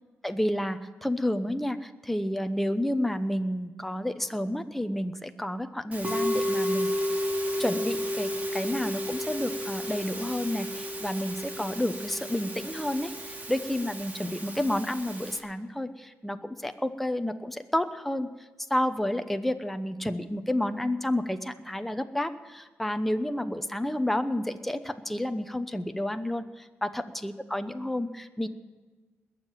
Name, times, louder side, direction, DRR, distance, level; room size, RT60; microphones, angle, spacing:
voice 1, 0.2-6.9 7.6-18.3 18.7-28.5, left 1 dB, 5° left, 8 dB, 0.9 m, -30 dB
Musical instrument, 5.9-15.4, equal, 35° right, 3.0 m, -32 dB
21.0 x 7.5 x 9.1 m, 1.3 s
cardioid pair, 110°, 5 cm